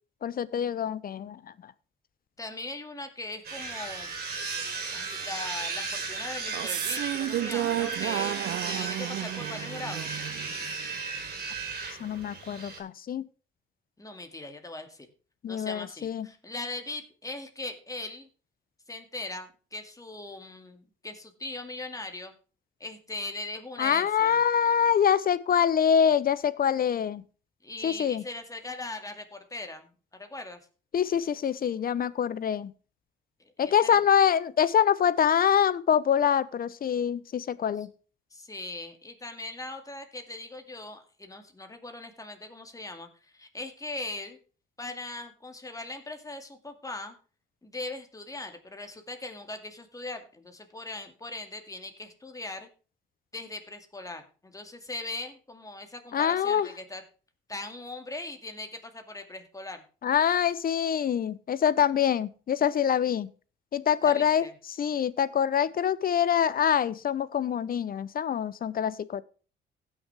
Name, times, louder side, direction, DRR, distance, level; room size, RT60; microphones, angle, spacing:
voice 1, 0.2-1.4 12.0-13.2 15.4-16.3 23.8-27.2 27.8-28.2 30.9-32.7 33.6-37.9 56.1-56.7 60.0-63.3 63.7-69.2, left 8 dB, 45° left, 18 dB, 0.7 m, -25 dB
voice 2, 2.4-4.1 4.9-10.2 14.0-15.1 15.5-18.3 18.9-22.3 22.8-24.4 27.6-30.6 33.4-34.0 37.8-37.9 38.3-44.4 44.8-47.1 47.6-52.7 53.3-57.0 57.5-59.8 64.0-64.5, left 2 dB, 15° left, 6 dB, 2.2 m, -40 dB
sound 1, 3.4-12.8, right 4 dB, 50° right, 3.8 m, -35 dB
sound 2, 6.4-10.9, right 13 dB, 65° right, 0.5 m, -32 dB
16.0 x 6.4 x 3.4 m, 0.36 s
cardioid pair, 90°, 20 cm